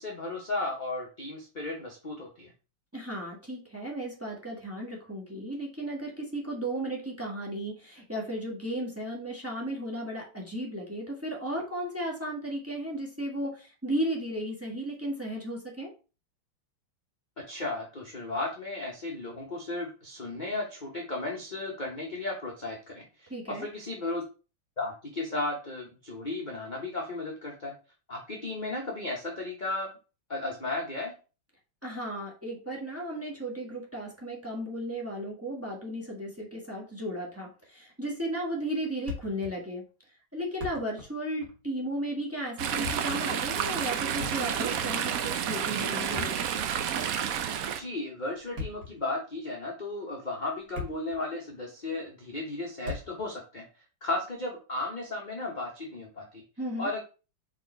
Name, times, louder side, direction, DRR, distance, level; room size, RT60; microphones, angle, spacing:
voice 1, 0.0-2.5 17.5-24.2 24.8-27.7 28.1-29.9 30.3-31.1 47.8-53.7 54.0-56.4 56.8-57.0, left 2 dB, 30° left, 0 dB, 0.9 m, -35 dB
voice 2, 2.9-15.9 23.3-23.7 31.8-39.8 40.3-46.4 56.6-56.9, right 1 dB, 10° right, -1 dB, 1.5 m, -35 dB
Thump thud, 39.1-39.6 39.8-39.9 40.4-41.1 41.4-41.6 42.6-43.2 44.1-44.8 46.0-46.9 48.3-49.0 49.7-49.9 50.4-51.2 51.5-51.6 52.8-53.3, left 3 dB, 50° right, 2.7 m, -39 dB
Chatter / Stream, 42.6-47.8, right 8 dB, 75° right, 0.8 m, -30 dB
4.8 x 4.4 x 4.5 m, 0.34 s
omnidirectional pair, 2.2 m